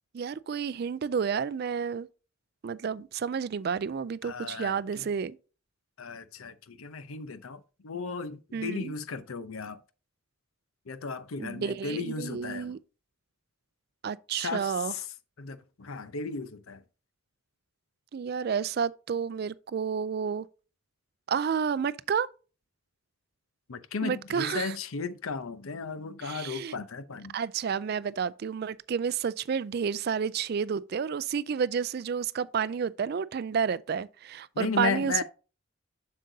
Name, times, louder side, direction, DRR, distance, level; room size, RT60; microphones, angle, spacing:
voice 1, 0.1-2.1 2.6-5.4 8.5-8.9 11.4-12.8 14.0-14.9 18.1-20.5 21.3-22.3 24.0-24.7 26.2-26.8 27.3-35.2, right 6 dB, 50° right, 0.3 m, -30 dB
voice 2, 4.2-5.1 6.0-9.8 10.9-12.8 14.3-15.0 15.4-16.8 23.7-27.3 34.5-35.2, left 4 dB, 90° left, 0.7 m, -35 dB
7.6 x 6.5 x 2.7 m
head